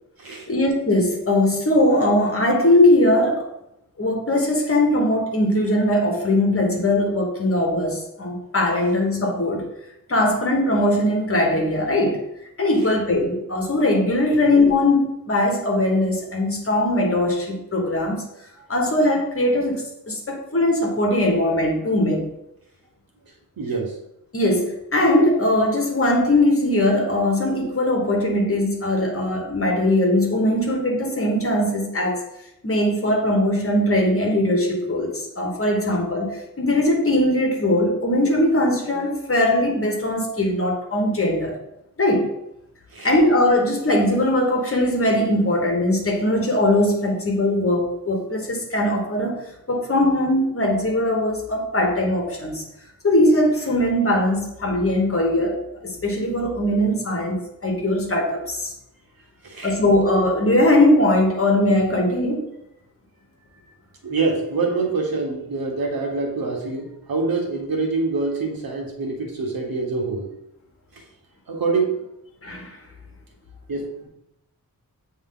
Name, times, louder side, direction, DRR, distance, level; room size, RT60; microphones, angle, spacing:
voice 1, 0.5-3.5 4.0-9.7 10.1-12.2 12.6-18.2 18.7-22.3 24.3-32.2 32.6-41.5 42.0-42.3 43.0-49.4 49.7-52.6 53.0-55.6 55.8-58.7 59.6-62.4 72.4-72.7, left 1 dB, 40° left, 1 dB, 1.4 m, -20 dB
voice 2, 23.6-24.0 42.9-43.1 59.4-59.8 64.0-70.3 70.9-71.0 71.5-72.0 73.7-74.1, right 3 dB, 90° right, 1 dB, 1.3 m, -25 dB
8.1 x 3.3 x 3.8 m, 0.83 s
wide cardioid pair, 115°, 35 cm